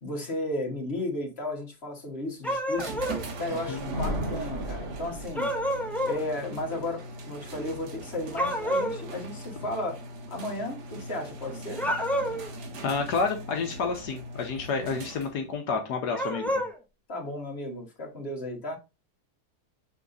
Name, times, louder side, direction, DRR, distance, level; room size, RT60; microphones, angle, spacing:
voice 1, 0.0-3.0 3.4-5.5 6.0-10.0 10.3-11.8 17.1-18.8, left 1 dB, 40° left, 2.0 m, -34 dB
sound 1, 2.4-3.2 5.4-6.2 8.4-9.0 11.7-12.5 16.1-16.7, equal, ahead, 0.9 m, -28 dB
sound 2, 2.8-15.5, right 1 dB, 80° right, 1.9 m, -40 dB
Thunder, 3.6-5.8, equal, 65° right, 3.6 m, -35 dB
voice 2, 12.8-16.6, left 4 dB, 80° left, 1.5 m, -30 dB
6.9 x 3.6 x 3.9 m
omnidirectional pair, 1.7 m